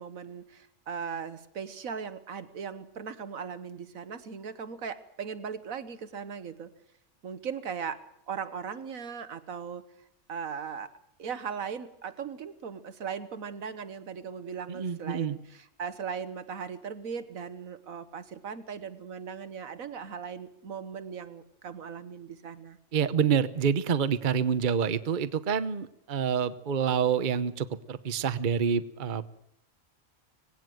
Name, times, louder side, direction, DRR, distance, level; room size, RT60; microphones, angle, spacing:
voice 1, 0.0-6.7 7.2-9.8 10.3-10.9 11.2-22.8, right 6 dB, 70° right, 13 dB, 1.6 m, -38 dB
voice 2, 14.7-15.4 22.9-29.2, right 7 dB, 40° right, 13 dB, 0.9 m, -27 dB
20.5 x 17.0 x 7.8 m, 0.77 s
omnidirectional pair, 1.5 m